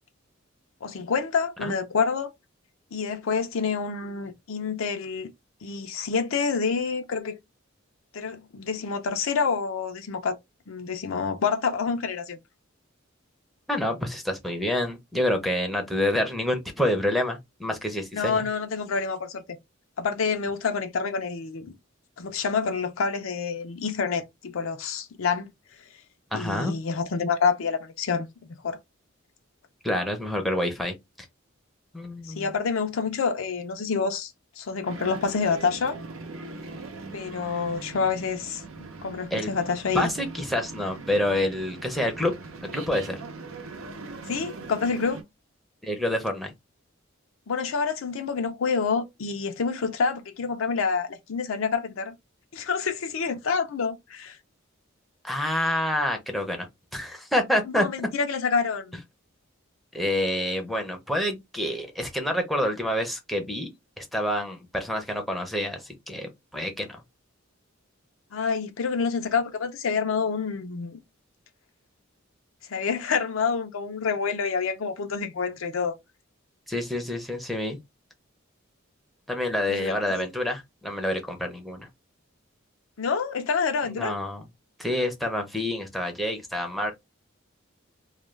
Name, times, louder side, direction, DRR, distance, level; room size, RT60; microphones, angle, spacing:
voice 1, 0.8-2.3 2.9-5.3 5.6-7.4 8.1-10.4 10.7-12.4 18.1-19.4 20.0-21.7 22.2-25.5 26.3-28.8 32.3-36.0 37.1-40.1 44.3-45.2 47.5-52.2 52.5-54.4 57.6-59.0 68.3-71.0 72.7-75.9 79.7-80.3 83.0-84.1, left 5 dB, 75° left, 0.5 m, -28 dB
voice 2, 13.7-18.4 26.3-26.7 29.8-31.0 31.9-32.5 39.3-39.5 39.9-42.3 42.7-43.2 45.8-46.5 55.2-57.8 59.9-63.7 64.0-67.0 76.7-77.8 79.3-81.9 84.0-84.4 84.8-86.9, left 1 dB, ahead, 0.6 m, -27 dB
sound 1, 34.8-45.2, right 3 dB, 85° right, 0.6 m, -41 dB
2.3 x 2.2 x 3.1 m
head